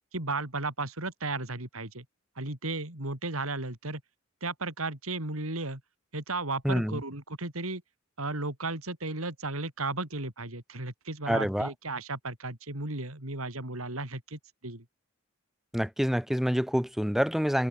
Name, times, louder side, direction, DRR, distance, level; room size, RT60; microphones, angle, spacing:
voice 1, 0.1-2.0 2.4-4.0 4.4-5.8 6.1-7.8 8.2-14.8, right 2 dB, 80° right, 5.1 m, -34 dB
voice 2, 6.6-7.0 11.3-11.7 15.7-17.7, equal, ahead, 1.0 m, -27 dB
head